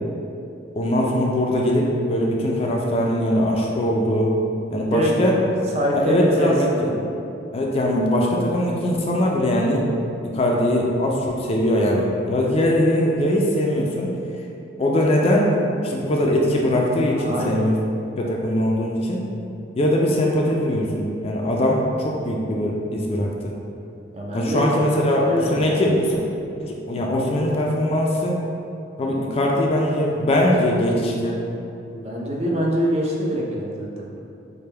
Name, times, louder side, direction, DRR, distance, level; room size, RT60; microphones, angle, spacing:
voice 1, 0.8-4.3 4.7-5.3 5.9-6.9 7.5-9.9 10.2-14.2 14.8-15.5 15.8-17.7 18.2-19.3 19.8-23.3 24.3-26.2 26.6-28.4 29.0-31.4, left 1 dB, 30° left, -2 dB, 0.3 m, -21 dB
voice 2, 4.8-5.1 5.7-6.9 17.1-17.6 24.1-24.6 25.1-25.7 31.9-34.2, equal, 35° right, -2 dB, 0.4 m, -24 dB
3.3 x 2.1 x 4.3 m, 2.7 s
head